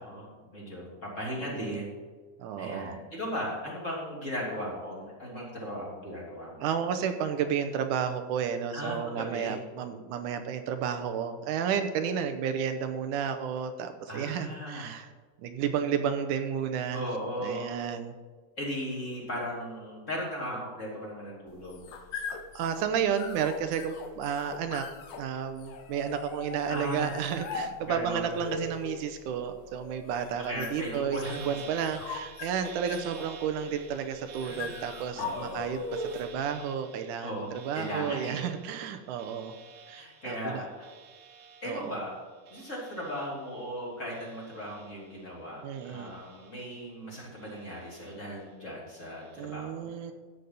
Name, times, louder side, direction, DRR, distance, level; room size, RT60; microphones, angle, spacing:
voice 1, 0.0-1.9 2.6-6.7 8.7-9.6 14.1-15.0 16.9-17.7 18.6-21.9 26.7-27.1 27.8-28.4 30.4-31.4 34.4-34.8 35.2-35.6 37.2-38.5 39.9-40.9 41.6-42.1 42.5-49.9, equal, 25° left, -4 dB, 3.2 m, -37 dB
voice 2, 1.4-1.8 2.4-3.0 6.6-15.1 15.4-17.0 17.4-18.1 22.3-24.9 25.2-39.5 39.9-40.6 41.6-42.0 45.6-46.1 49.4-50.1, right 7 dB, 85° right, 8 dB, 2.3 m, -32 dB
sound 1, 21.5-36.4, left 4 dB, 70° left, 1.3 m, -41 dB
sound 2, 31.2-43.8 44.1-45.3 45.7-46.9 47.4-48.4 49.0-49.5, right 6 dB, 65° right, 1.6 m, -51 dB
13.5 x 9.1 x 4.0 m, 1.4 s
omnidirectional pair, 3.6 m